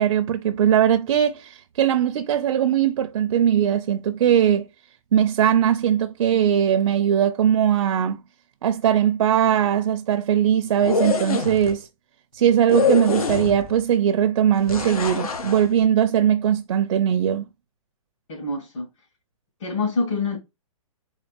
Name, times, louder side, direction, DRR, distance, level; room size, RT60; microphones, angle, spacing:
voice 1, 0.0-4.7 5.1-8.2 8.6-11.9 12.3-17.4, right 9 dB, 60° right, 0.5 m, -20 dB
sound 1, 10.7-11.7 12.7-13.8 14.7-15.6, left 4 dB, 90° left, 1.1 m, -24 dB
voice 2, 18.3-18.9 19.6-20.4, left 3 dB, 55° left, 2.2 m, -26 dB
4.0 x 3.7 x 3.3 m
hypercardioid pair, 155°, 18 cm